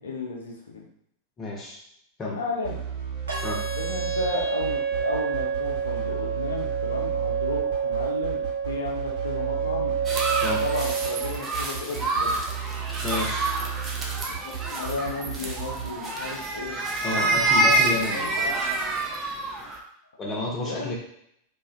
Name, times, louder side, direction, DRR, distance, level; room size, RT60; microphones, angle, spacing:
voice 1, 0.0-0.9 2.3-2.8 3.7-10.0 10.6-12.3 14.3-16.8 17.0-17.3 18.1-18.6 20.6-20.9, left 3 dB, 70° left, 0 dB, 0.5 m, -34 dB
voice 2, 1.4-1.8 2.2-2.4 3.4-3.6 10.4-10.6 13.0-13.5 17.0-18.3 20.2-20.9, left 2 dB, 25° left, -3 dB, 0.7 m, -30 dB
sound 1, 2.6-15.9, right 8 dB, 50° right, 1.1 m, -34 dB
sound 2, 3.3-11.3, right 6 dB, 75° right, 0.5 m, -28 dB
sound 3, 10.0-19.8, right 2 dB, 25° right, 0.5 m, -27 dB
2.3 x 2.2 x 2.4 m, 0.73 s
figure-of-eight pair, 90°, 0 cm